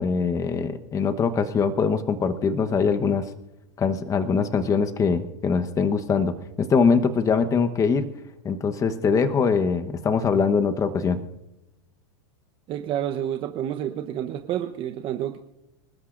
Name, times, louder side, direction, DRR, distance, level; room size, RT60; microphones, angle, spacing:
voice 1, 0.0-3.2 3.8-8.1 8.4-11.2, left 5 dB, 25° left, 9 dB, 1.0 m, -22 dB
voice 2, 12.7-15.4, right 11 dB, 40° right, 6 dB, 0.9 m, -29 dB
26.5 x 13.0 x 2.6 m, 0.93 s
hypercardioid pair, 110°, 14 cm